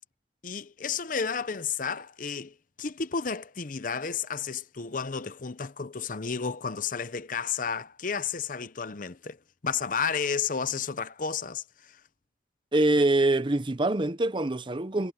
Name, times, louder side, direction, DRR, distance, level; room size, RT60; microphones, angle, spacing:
voice 1, 0.4-9.4 9.6-12.0, left 6 dB, 50° left, 0.8 m, -32 dB
voice 2, 12.7-15.1, right 2 dB, 30° right, 0.8 m, -24 dB
head